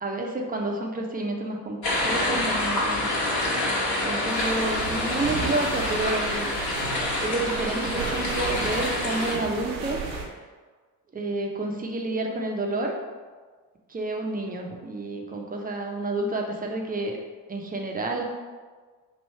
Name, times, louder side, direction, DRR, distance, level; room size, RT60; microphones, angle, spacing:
voice 1, 0.0-3.1 4.0-6.5 7.2-10.0 11.1-12.9 13.9-17.2 17.5-18.2, right 2 dB, 20° right, 1 dB, 0.6 m, -29 dB
sound 1, 1.8-9.3, left 1 dB, 50° left, 1.2 m, -27 dB
sound 2, 4.3-10.2, right 4 dB, 80° right, 0.7 m, -34 dB
3.2 x 2.7 x 4.3 m, 1.4 s
hypercardioid pair, 50°, 50 cm